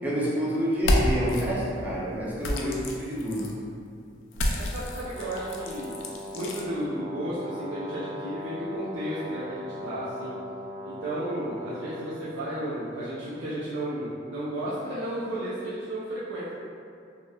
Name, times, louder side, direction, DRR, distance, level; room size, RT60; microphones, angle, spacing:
voice 1, 0.0-3.5, equal, 10° right, -7 dB, 0.4 m, -28 dB
sound 1, 0.7-1.4 2.4-3.5 4.3-6.6, left 1 dB, 80° left, 0.3 m, -29 dB
voice 2, 4.5-5.9 6.3-10.4 10.8-16.5, right 1 dB, 90° right, -10 dB, 0.4 m, -33 dB
Brass instrument, 5.1-12.1, left 1 dB, 55° right, 1.0 m, -39 dB
2.8 x 2.0 x 2.2 m, 2.4 s
head